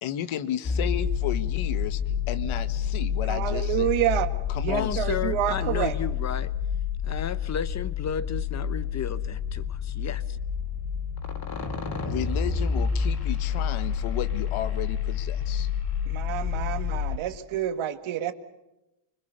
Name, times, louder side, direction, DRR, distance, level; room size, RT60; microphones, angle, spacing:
voice 1, 0.0-2.0 2.3-3.9 4.5-5.0 12.0-15.7, left 11 dB, 85° left, 1.8 m, -33 dB
sound 1, 0.6-17.2, left 7 dB, 50° left, 3.6 m, -29 dB
voice 2, 3.3-4.3 4.6-6.0 16.1-18.3, right 12 dB, 80° right, 2.0 m, -28 dB
voice 3, 4.7-6.5 7.0-10.4, left 7 dB, 35° left, 1.0 m, -33 dB
25.0 x 25.0 x 6.8 m
cardioid pair, 150°, 47 cm